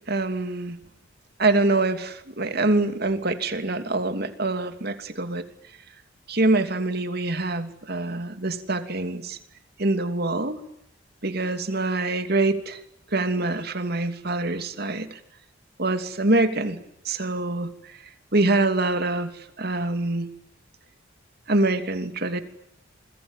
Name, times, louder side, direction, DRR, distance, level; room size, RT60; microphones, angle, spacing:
voice 1, 0.1-0.8 1.4-5.4 6.3-9.4 9.8-10.6 11.2-12.8 13.1-15.2 15.8-16.8 17.0-18.0 18.3-19.3 19.6-20.3 21.5-22.4, right 2 dB, 55° right, 8 dB, 2.9 m, -25 dB
29.0 x 22.0 x 9.1 m, 0.77 s
head